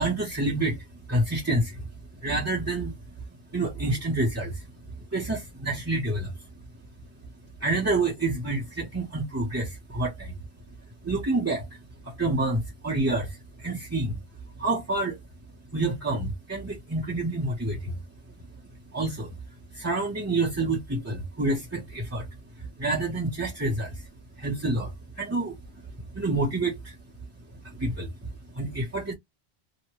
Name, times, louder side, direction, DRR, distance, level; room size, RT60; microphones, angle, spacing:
voice 1, 0.0-1.9 2.1-3.1 3.5-4.7 4.9-6.3 7.6-10.3 11.0-14.2 14.6-15.2 15.7-18.0 18.9-19.4 19.7-22.3 22.6-24.1 24.4-27.0 27.6-29.1, right 2 dB, 15° right, 0.6 m, -28 dB
3.1 x 2.1 x 2.8 m
omnidirectional pair, 1.1 m